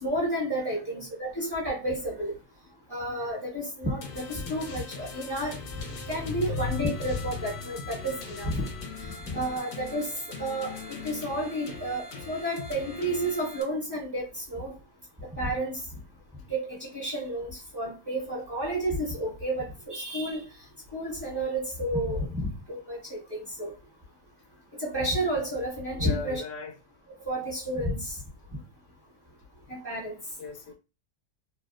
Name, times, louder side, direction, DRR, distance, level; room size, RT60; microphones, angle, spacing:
voice 1, 0.0-2.3 2.9-5.5 6.1-8.7 9.3-10.1 10.4-14.7 15.4-15.8 16.5-20.5 20.9-23.0 23.3-23.7 24.8-26.4 27.2-28.1 29.7-30.1, right 1 dB, 15° right, 1.2 m, -31 dB
voice 2, 0.7-1.0 4.4-4.6 26.0-26.7 30.4-30.7, left 4 dB, 80° left, 1.2 m, -39 dB
sound 1, 4.0-13.6, left 4 dB, 60° left, 1.0 m, -41 dB
3.1 x 2.7 x 2.4 m
omnidirectional pair, 1.9 m